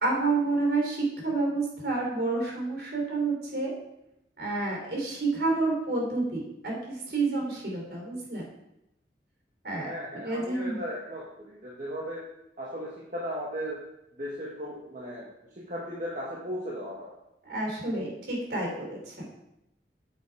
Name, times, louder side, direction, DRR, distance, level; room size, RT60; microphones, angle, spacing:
voice 1, 0.0-3.7 4.4-8.4 9.6-10.8 17.5-19.3, right 3 dB, 65° right, -1 dB, 3.6 m, -29 dB
voice 2, 9.8-12.2 12.6-13.8 14.2-15.3 15.5-17.1, equal, 45° right, -5 dB, 1.7 m, -36 dB
8.6 x 7.9 x 4.8 m, 0.85 s
head